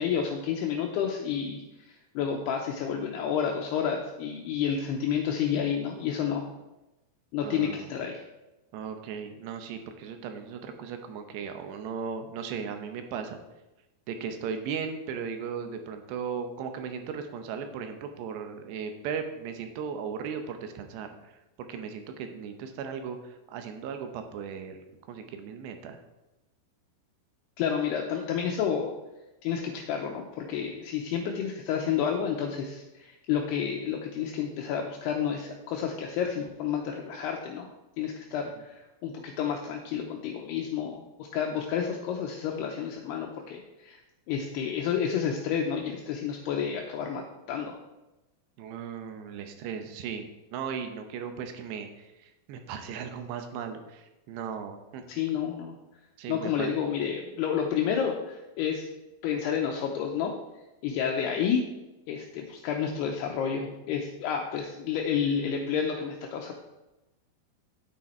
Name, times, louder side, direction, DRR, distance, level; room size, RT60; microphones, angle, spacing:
voice 1, 0.0-6.5 7.3-8.2 27.6-28.9 29.4-37.7 38.0-44.0 44.3-47.8 55.1-55.8 56.3-58.9 59.2-60.3 60.8-61.6 62.1-66.5, left 7 dB, 75° left, 1 dB, 2.7 m, -30 dB
voice 2, 7.4-8.0 8.7-13.4 14.1-21.4 21.7-24.8 25.1-26.0 48.6-55.1 56.2-56.8, right 6 dB, 80° right, 6 dB, 3.1 m, -37 dB
9.5 x 9.2 x 4.3 m, 0.99 s
omnidirectional pair, 4.9 m